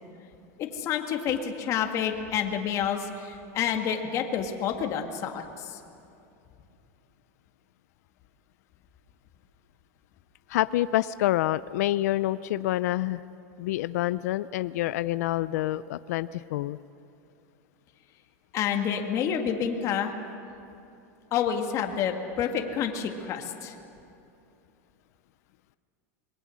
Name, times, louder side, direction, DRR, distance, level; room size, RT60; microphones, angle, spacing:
voice 1, 0.6-5.8 18.5-20.1 21.3-23.7, left 8 dB, 35° left, 4 dB, 1.8 m, -29 dB
voice 2, 10.5-13.2 13.6-16.8, left 15 dB, 80° left, 16 dB, 0.5 m, -27 dB
27.0 x 21.5 x 6.4 m, 2.7 s
supercardioid pair, 145°, 9 cm